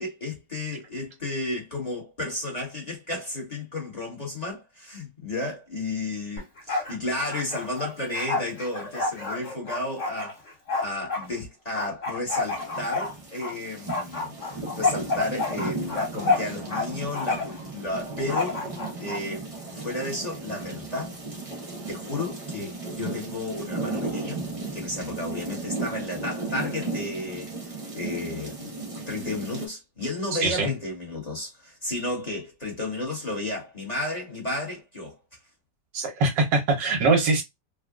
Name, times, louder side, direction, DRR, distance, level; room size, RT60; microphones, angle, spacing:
voice 1, 0.0-10.4 10.8-18.6 19.0-19.5 19.7-21.1 21.9-24.4 24.7-27.5 27.9-28.6 29.1-35.2, left 2 dB, 25° left, 1.2 m, -32 dB
Bark, 6.4-7.0 7.2-11.3 11.7-13.5 13.9-16.9 17.1-17.6 18.3-19.2, left 3 dB, 45° left, 1.8 m, -29 dB
sound 1, 12.3-29.7, right 3 dB, 30° right, 0.6 m, -35 dB
voice 2, 35.9-37.4, right 3 dB, 80° right, 1.7 m, -22 dB
3.7 x 2.4 x 2.3 m
omnidirectional pair, 1.9 m